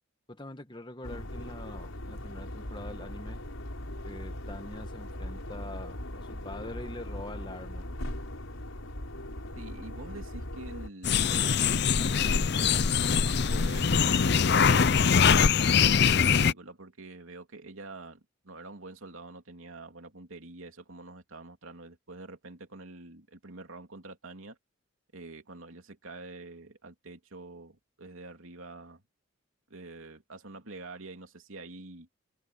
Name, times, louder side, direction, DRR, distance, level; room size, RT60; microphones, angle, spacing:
voice 1, 0.3-3.4 4.0-7.9, left 1 dB, 20° left, 1.6 m, -44 dB
sound 1, 1.0-10.9, left 1 dB, 85° left, 4.8 m, -39 dB
voice 2, 9.6-15.0 15.7-24.6 25.1-29.0 29.7-32.1, right 2 dB, 75° right, 3.0 m, -46 dB
sound 2, 11.0-16.5, left 6 dB, 50° left, 0.6 m, -23 dB
head